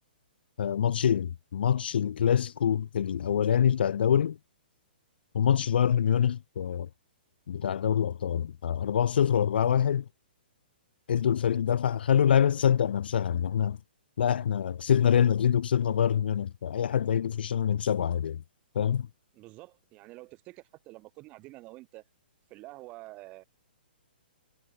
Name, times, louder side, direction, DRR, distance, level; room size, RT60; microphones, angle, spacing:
voice 1, 0.6-4.4 5.3-6.9 7.5-10.1 11.1-13.8 14.2-18.4 18.7-19.1, left 8 dB, 75° left, 0.4 m, -25 dB
voice 2, 19.3-22.0 22.5-23.4, right 20 dB, 25° right, 3.0 m, -48 dB
hypercardioid pair, 155°, 6 cm